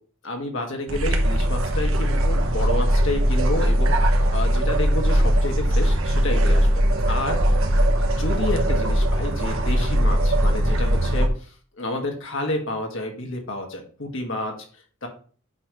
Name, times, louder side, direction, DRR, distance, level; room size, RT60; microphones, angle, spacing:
voice 1, 0.2-6.7 7.1-7.6 8.2-11.5 11.8-14.5 15.0-15.1, left 2 dB, 65° left, 2 dB, 1.7 m, -30 dB
sound 1, 0.9-11.3, equal, 70° right, 1.1 m, -20 dB
8.4 x 3.1 x 5.3 m, 0.42 s
head